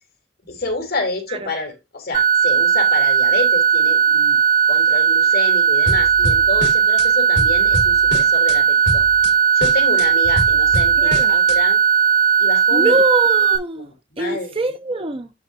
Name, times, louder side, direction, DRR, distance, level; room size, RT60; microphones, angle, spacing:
voice 1, 0.5-4.4 4.7-9.0 9.5-11.8 12.4-13.0 13.8-13.9 14.1-14.5, left 2 dB, 55° left, 3.3 m, -28 dB
sound 1, 2.1-13.6, right 7 dB, 50° right, 3.5 m, -16 dB
sound 2, 5.9-7.1 7.4-8.6 8.9-9.3 9.6-11.6, left 1 dB, 70° left, 1.9 m, -26 dB
voice 2, 11.0-11.4 12.7-13.9 14.2-15.3, right 2 dB, 30° right, 0.6 m, -23 dB
14.0 x 4.8 x 2.7 m
head